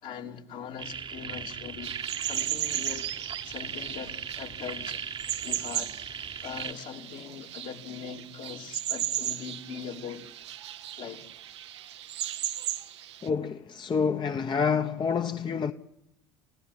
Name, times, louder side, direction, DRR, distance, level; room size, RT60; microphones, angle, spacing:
voice 1, 0.0-3.1 3.4-5.0 5.4-6.0 6.4-10.3 11.0-11.3, left 7 dB, 65° left, 3.4 m, -41 dB
sound 1, 0.8-6.7, right 7 dB, 35° right, 1.2 m, -38 dB
sound 2, 1.8-13.3, right 12 dB, 85° right, 1.0 m, -36 dB
voice 2, 13.2-15.7, left 6 dB, 30° left, 1.1 m, -28 dB
28.5 x 16.0 x 10.0 m
hypercardioid pair, 70°, 14 cm